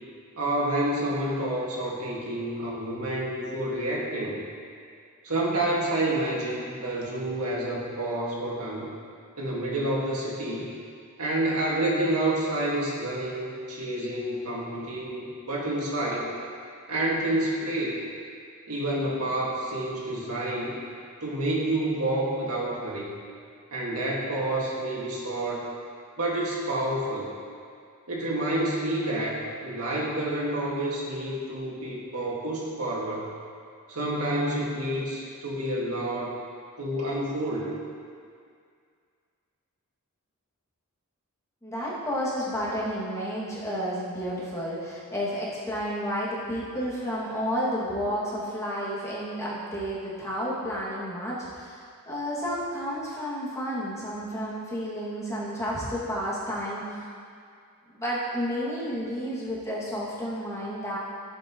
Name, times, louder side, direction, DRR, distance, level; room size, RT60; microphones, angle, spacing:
voice 1, 0.4-4.4 5.2-8.9 9.4-10.7 11.2-16.3 16.9-18.0 18.7-20.8 21.2-23.1 23.7-25.6 26.2-27.3 28.1-33.3 33.9-36.3 36.8-37.7, right 1 dB, 85° right, -4 dB, 2.0 m, -29 dB
voice 2, 41.6-51.8 52.1-57.0 57.9-61.0, equal, 15° left, -8 dB, 2.3 m, -31 dB
14.5 x 7.5 x 3.1 m, 2.2 s
head